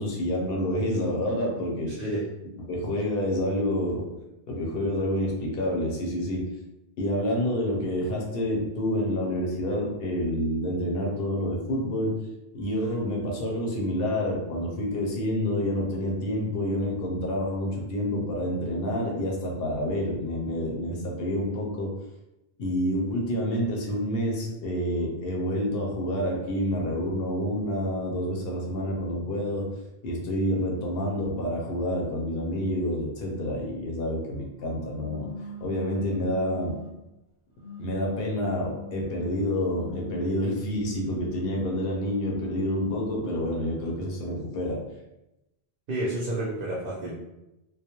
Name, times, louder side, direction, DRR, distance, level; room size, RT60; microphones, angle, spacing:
voice 1, 0.0-1.9 2.7-4.1 4.5-6.5 7.0-12.2 12.5-21.9 22.6-29.7 30.0-35.3 35.6-36.8 37.8-44.8, equal, 70° left, -1 dB, 0.8 m, -28 dB
voice 2, 1.9-2.2 45.9-47.2, right 1 dB, 65° right, -4 dB, 0.7 m, -30 dB
sound 1, 34.9-37.0 37.6-40.3 40.8-43.1, left 3 dB, 20° right, 0.8 m, -41 dB
2.3 x 2.0 x 2.8 m, 0.93 s
omnidirectional pair, 1.0 m